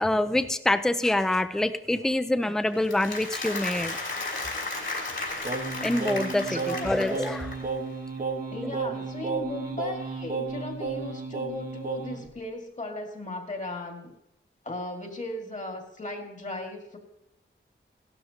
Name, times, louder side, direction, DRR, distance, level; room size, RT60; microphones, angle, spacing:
voice 1, 0.0-4.0 5.8-7.5, left 1 dB, ahead, 11 dB, 0.5 m, -26 dB
Applause, 2.7-7.8, left 2 dB, 60° left, 3.4 m, -34 dB
Singing, 5.4-12.3, right 4 dB, 40° right, 1.2 m, -33 dB
voice 2, 6.4-6.9 8.5-14.1 14.6-17.0, left 2 dB, 35° left, 2 dB, 2.0 m, -37 dB
16.5 x 12.5 x 2.9 m, 0.84 s
wide cardioid pair, 110°, 21 cm